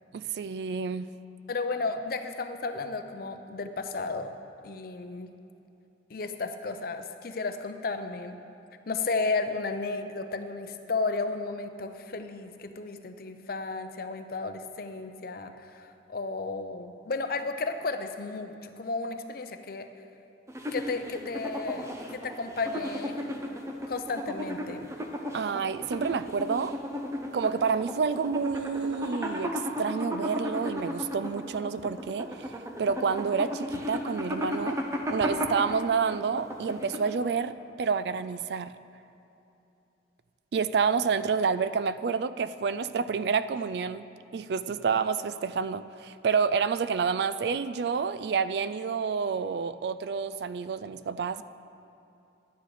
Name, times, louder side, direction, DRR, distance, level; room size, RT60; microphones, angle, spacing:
voice 1, 0.1-1.1 25.3-26.8 27.3-34.8 35.1-38.7 40.5-44.1 44.3-51.4, right 5 dB, 65° right, 14 dB, 0.3 m, -29 dB
voice 2, 1.5-4.3 4.6-5.3 6.1-8.4 8.9-19.9 20.7-23.3 23.9-24.9, left 3 dB, 55° left, 8 dB, 0.6 m, -33 dB
sound 1, 20.5-37.3, left 1 dB, 15° right, 0.7 m, -35 dB
11.0 x 9.3 x 4.9 m, 2.8 s
head